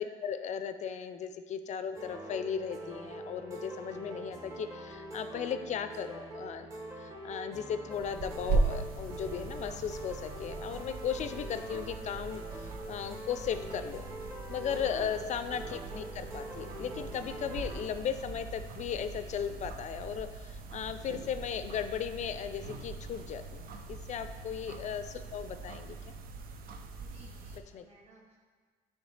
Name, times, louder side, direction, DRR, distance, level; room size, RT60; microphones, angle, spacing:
voice 1, 0.0-6.7 7.0-14.0 14.5-26.1 27.7-27.8, left 8 dB, 45° left, 10 dB, 0.4 m, -36 dB
sound 1, 1.9-17.8, right 1 dB, 20° right, 1.1 m, -44 dB
sound 2, 7.9-27.6, right 3 dB, 60° right, 0.5 m, -39 dB
voice 2, 27.0-28.4, right 3 dB, 40° right, -4 dB, 1.7 m, -60 dB
9.5 x 3.3 x 3.2 m, 1.5 s
cardioid pair, 110°, 17 cm